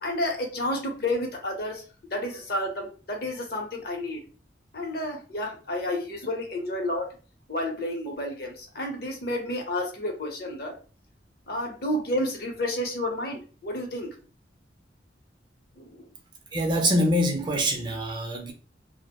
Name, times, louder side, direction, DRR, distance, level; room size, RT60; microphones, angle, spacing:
voice 1, 0.0-1.8 2.1-4.2 4.7-7.1 7.5-10.8 11.5-14.1 15.8-16.1, left 1 dB, 55° left, 0.7 m, -30 dB
voice 2, 16.5-18.5, equal, 25° right, 0.4 m, -24 dB
2.5 x 2.0 x 2.8 m
head